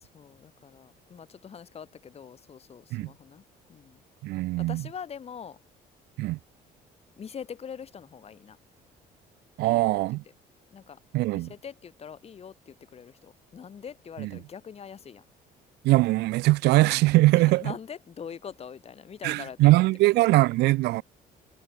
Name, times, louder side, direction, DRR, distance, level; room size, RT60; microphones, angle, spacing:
voice 1, 0.0-3.4 3.7-4.0 4.6-5.6 7.2-8.6 9.6-10.0 10.7-11.0 11.3-15.3 17.3-19.8, left 7 dB, 35° left, 1.7 m, -43 dB
voice 2, 4.2-4.8 6.2-6.4 9.6-10.2 11.1-11.5 14.2-14.3 15.8-17.7 19.2-21.0, right 19 dB, 75° right, 0.5 m, -21 dB
cardioid pair, 110°, 17 cm